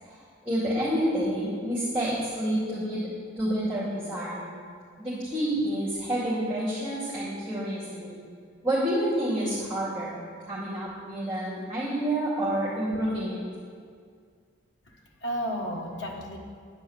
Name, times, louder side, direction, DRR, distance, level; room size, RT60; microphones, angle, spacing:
voice 1, 0.4-3.0 3.4-4.5 5.0-8.2 8.6-10.1 10.4-13.4, right 1 dB, 5° right, -11 dB, 2.4 m, -28 dB
voice 2, 14.9-16.4, equal, 65° left, -1 dB, 1.4 m, -33 dB
11.0 x 4.6 x 7.9 m, 2.1 s
head